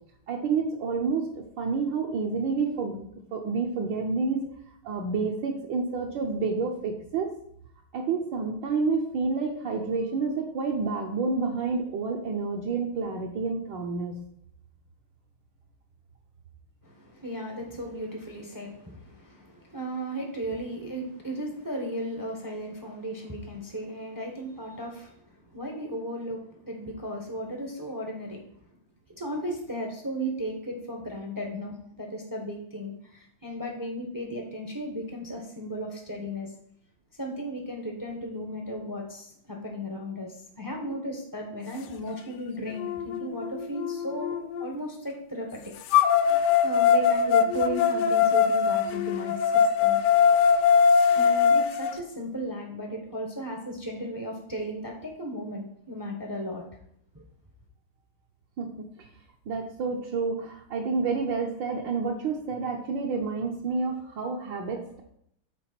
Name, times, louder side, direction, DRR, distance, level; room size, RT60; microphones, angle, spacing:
voice 1, 0.3-4.5 4.8-7.3 7.9-14.1 58.6-58.7 59.5-65.0, right 4 dB, 70° right, -1 dB, 1.4 m, -29 dB
voice 2, 16.8-25.1 25.4-28.5 29.1-36.5 37.2-45.7 46.6-50.0 51.1-56.6 57.1-57.2, equal, 20° right, 0 dB, 0.5 m, -35 dB
sound 1, 42.1-42.2 42.8-44.7 45.9-51.9, left 7 dB, 75° left, 1.0 m, -22 dB
6.0 x 4.4 x 5.8 m, 0.69 s
omnidirectional pair, 2.2 m